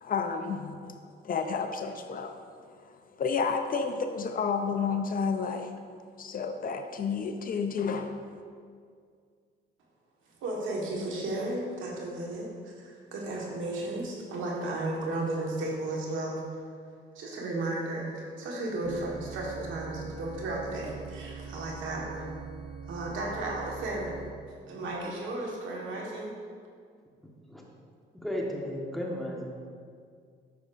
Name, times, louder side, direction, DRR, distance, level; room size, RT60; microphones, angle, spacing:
voice 1, 0.0-0.9 1.2-2.3 2.6-2.8 3.2-5.7 6.2-8.2, left 5 dB, 45° left, 6 dB, 0.5 m, -31 dB
voice 2, 10.4-16.4 17.1-22.4 22.9-24.1 24.7-26.3, right 2 dB, 80° right, -3 dB, 1.5 m, -34 dB
sound 1, 18.8-24.3, right 5 dB, 65° right, 0.9 m, -43 dB
voice 3, 28.2-29.5, equal, ahead, -2 dB, 1.3 m, -34 dB
9.2 x 6.2 x 2.6 m, 2.1 s
cardioid pair, 90°, 20 cm